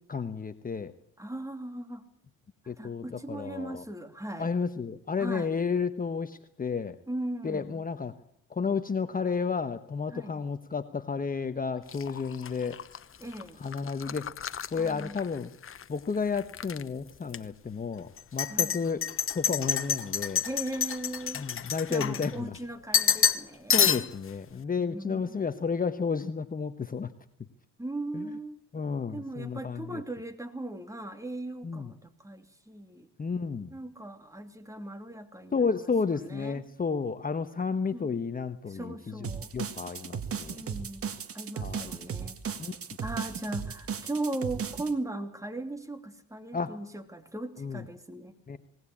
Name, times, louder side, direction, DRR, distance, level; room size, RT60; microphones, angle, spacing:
voice 1, 0.1-0.9 2.7-3.8 4.4-7.0 7.4-8.1 8.5-12.8 13.6-14.2 14.7-15.5 15.9-19.0 19.3-20.4 21.3-22.5 23.7-27.1 28.1-28.2 28.7-30.0 31.6-31.9 33.2-33.7 35.5-40.6 41.6-41.9 42.6-42.7 46.5-46.8 47.6-47.8 48.5-48.6, left 5 dB, 30° left, 9 dB, 1.2 m, -32 dB
voice 2, 1.2-2.0 2.6-4.5 5.2-5.5 7.1-7.8 10.1-10.4 13.2-13.6 14.8-15.2 18.5-18.8 20.4-21.4 21.9-23.8 24.8-25.5 27.8-28.6 29.1-33.1 33.7-35.8 36.1-36.6 37.9-38.2 38.7-39.5 40.5-41.1 41.3-42.4 43.0-48.4, right 2 dB, 10° right, 7 dB, 2.8 m, -38 dB
sound 1, 11.9-15.8 16.2-16.8 17.3-17.4 18.2-22.6 22.9-23.4 23.7-24.3, left 8 dB, 45° left, 1.1 m, -29 dB
sound 2, 39.2-44.9, right 7 dB, 50° right, 1.9 m, -36 dB
20.0 x 18.5 x 8.6 m, 0.67 s
cardioid pair, 90°, 30 cm